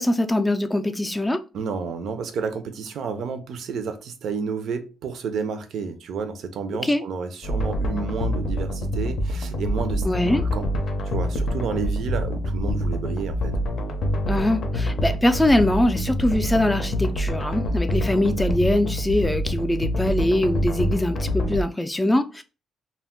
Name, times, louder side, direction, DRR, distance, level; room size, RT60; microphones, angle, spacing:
voice 1, 0.0-1.4 6.8-7.0 10.0-10.4 14.3-22.4, left 1 dB, 10° left, 0.4 m, -22 dB
voice 2, 1.5-10.7 11.0-13.5, right 5 dB, 70° right, 0.5 m, -31 dB
sound 1, 7.4-21.6, equal, 65° left, 0.6 m, -26 dB
2.2 x 2.1 x 3.6 m
cardioid pair, 90°, 0 cm